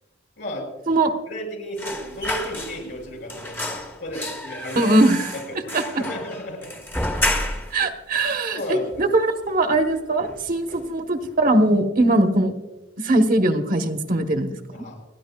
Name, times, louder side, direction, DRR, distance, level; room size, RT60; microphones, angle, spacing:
voice 1, 0.4-0.7 1.3-4.9 5.5-5.6 6.0-6.7 8.5-9.1 10.7-10.8 14.7-15.0, equal, 65° left, 1 dB, 5.6 m, -33 dB
sound 1, 1.8-3.0 3.3-7.8 8.2-8.3 8.6-9.4 9.7-9.9 10.2-10.9 11.2-11.4, left 1 dB, 10° left, 1.0 m, -30 dB
voice 2, 4.8-5.2 5.7-5.8 7.7-8.6 9.0-12.5 13.0-14.5, right 1 dB, 45° right, 5 dB, 1.0 m, -20 dB
30.0 x 10.0 x 2.3 m, 1.1 s
head